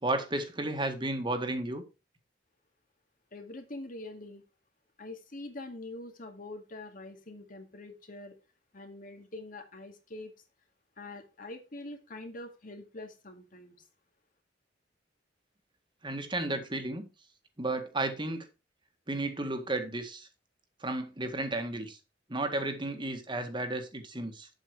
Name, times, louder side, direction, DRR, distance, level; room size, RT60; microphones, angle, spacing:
voice 1, 0.0-1.8 16.0-17.1 17.6-18.5 19.1-20.3 20.8-22.0 22.3-24.5, right 2 dB, 25° right, 1.7 m, -33 dB
voice 2, 3.3-4.4 5.0-8.3 8.7-10.3 11.0-13.8, left 2 dB, 50° left, 2.2 m, -44 dB
8.2 x 8.1 x 4.8 m
head